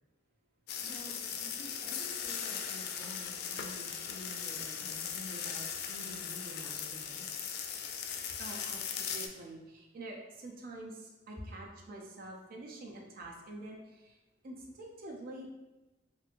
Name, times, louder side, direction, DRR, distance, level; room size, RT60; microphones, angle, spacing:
sound 1, 0.7-9.3, left 7 dB, 55° left, 0.3 m, -39 dB
voice 1, 0.8-7.3 11.4-11.5, left 1 dB, 10° left, -5 dB, 0.7 m, -49 dB
voice 2, 8.4-14.2 14.4-15.5, right 2 dB, 50° right, 0 dB, 0.4 m, -46 dB
3.1 x 3.0 x 2.5 m, 1.1 s
head